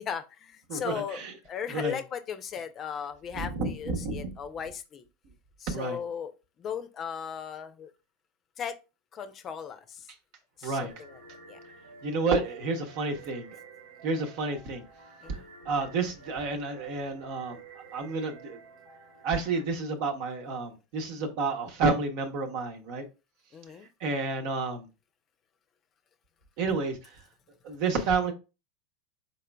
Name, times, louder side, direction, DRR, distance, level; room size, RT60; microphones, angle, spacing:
voice 1, 0.0-5.0 5.6-6.3 6.6-7.9 8.6-8.8 9.1-10.1 10.6-11.2 11.5-11.6 15.2-15.5 23.5-23.9, left 7 dB, 35° left, 0.5 m, -37 dB
voice 2, 0.7-1.3 1.7-2.0 3.3-4.3 5.7-6.0 10.6-10.9 12.0-13.6 14.0-14.8 15.3-15.4 15.6-17.6 17.9-18.6 19.2-23.1 24.0-24.9 26.6-27.2 27.6-28.3, right 4 dB, 60° right, 0.9 m, -30 dB
sound 1, 10.9-19.6, right 4 dB, 85° right, 1.3 m, -51 dB
4.1 x 3.8 x 2.3 m
hypercardioid pair, 90°, 0 cm